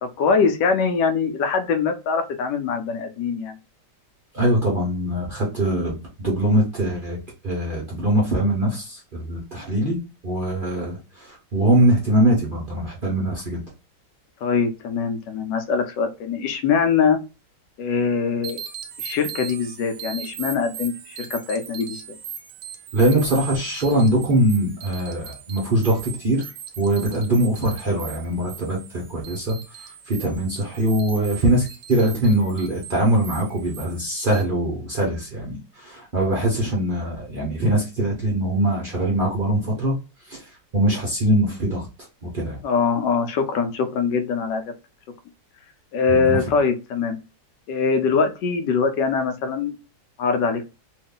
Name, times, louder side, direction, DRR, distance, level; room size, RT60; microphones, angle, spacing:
voice 1, 0.0-3.6 14.4-17.2 17.8-18.6 19.0-22.2 42.6-44.6 45.9-47.2 47.7-49.7 50.2-50.7, left 5 dB, 80° left, 7 dB, 1.2 m, -23 dB
voice 2, 4.3-7.2 7.4-10.0 10.2-13.6 22.9-26.4 26.8-29.6 30.1-40.0 40.3-40.4 40.7-41.9 42.2-42.6 46.1-46.4, right 1 dB, 40° right, -3 dB, 0.8 m, -22 dB
sound 1, 18.4-34.4, right 7 dB, 75° right, 1.3 m, -39 dB
3.0 x 2.5 x 3.6 m, 0.29 s
omnidirectional pair, 1.9 m